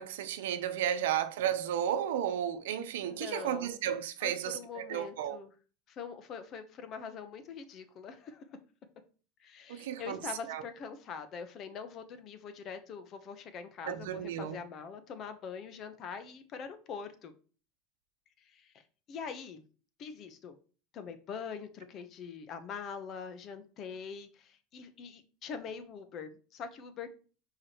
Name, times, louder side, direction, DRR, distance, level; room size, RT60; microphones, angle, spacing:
voice 1, 0.0-5.4 9.7-10.2 10.5-10.6 13.9-14.6, right 10 dB, 85° right, 0.8 m, -33 dB
voice 2, 3.1-3.8 4.2-5.5 5.9-8.4 9.4-17.3 18.4-18.8 19.1-19.6 20.0-20.5 20.9-27.1, left 6 dB, 45° left, 1.1 m, -43 dB
4.8 x 4.8 x 4.5 m
supercardioid pair, 115°, 0 cm